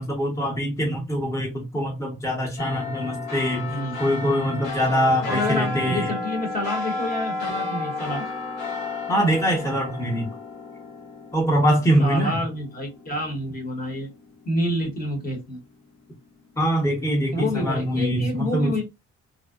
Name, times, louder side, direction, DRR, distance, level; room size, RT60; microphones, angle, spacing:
voice 1, 0.0-3.7 4.0-6.1 9.1-10.3 11.3-12.4 16.6-18.8, equal, 10° left, 0.9 m, -23 dB
sound 1, 2.6-13.3 13.8-13.9, left 3 dB, 90° left, 1.0 m, -32 dB
voice 2, 5.2-8.3 12.0-14.1 14.4-15.6 17.3-18.8, left 1 dB, 30° left, 1.0 m, -28 dB
2.6 x 2.0 x 2.3 m
cardioid pair, 90°, 30 cm